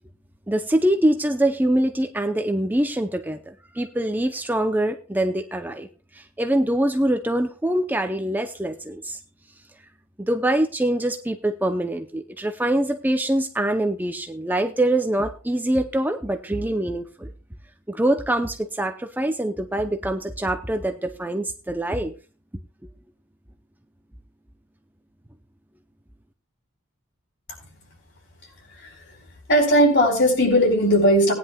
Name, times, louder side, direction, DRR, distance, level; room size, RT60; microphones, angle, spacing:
voice 1, 0.5-5.9 6.1-9.2 10.2-17.3 17.9-22.1, right 1 dB, 10° right, 6 dB, 0.6 m, -24 dB
voice 2, 29.5-31.3, equal, 55° left, 1 dB, 4.5 m, -18 dB
18.5 x 10.0 x 2.3 m, 0.34 s
head